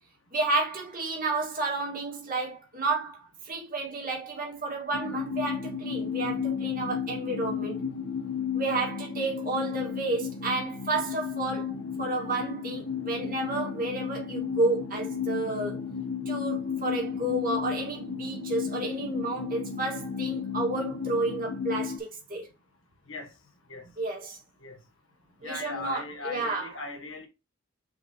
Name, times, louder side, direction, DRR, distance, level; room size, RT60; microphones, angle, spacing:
voice 1, 0.3-7.8 8.5-15.8 16.3-22.5 24.0-24.4 25.4-26.7, right 2 dB, 40° right, 2.3 m, -31 dB
sound 1, 4.9-22.0, left 7 dB, 90° left, 1.0 m, -33 dB
voice 2, 25.4-27.3, left 3 dB, 65° left, 1.5 m, -38 dB
6.1 x 4.8 x 3.2 m
head